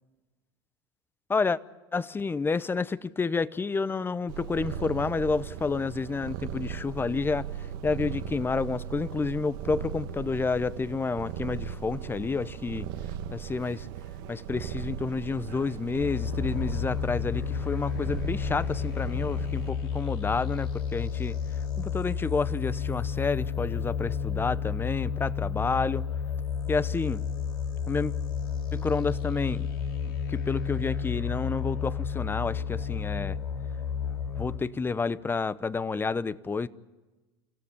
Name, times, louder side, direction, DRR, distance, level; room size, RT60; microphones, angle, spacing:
voice 1, 1.9-7.5 7.8-12.9 13.3-13.9 14.3-21.4 21.8-26.1 26.7-27.2 27.9-28.1 28.7-29.7 30.3-33.4 34.4-36.7, left 4 dB, 15° left, 0.9 m, -30 dB
Purr, 4.3-19.7, right 9 dB, 70° right, 1.5 m, -38 dB
sound 1, 16.0-34.6, left 7 dB, 85° left, 4.2 m, -31 dB
28.0 x 16.0 x 9.9 m
hypercardioid pair, 90°, 12 cm